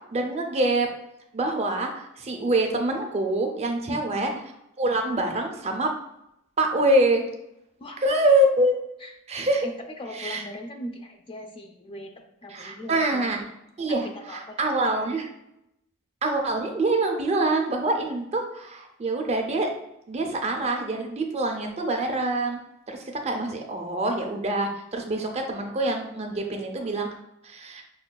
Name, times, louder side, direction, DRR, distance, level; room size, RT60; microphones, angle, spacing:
voice 1, 0.1-0.9 1.3-4.3 4.8-5.9 6.6-7.3 8.0-8.8 9.3-9.7 10.2-10.4 12.5-13.4 13.8-15.3 16.2-19.7 20.1-22.6 22.9-27.1 27.4-27.8, right 2 dB, 30° right, 3 dB, 0.5 m, -25 dB
voice 2, 3.9-4.4 7.8-8.0 9.0-9.1 9.6-13.3 14.3-14.6 14.8-15.3, equal, 25° left, 4 dB, 0.3 m, -39 dB
5.8 x 2.2 x 2.2 m, 0.84 s
head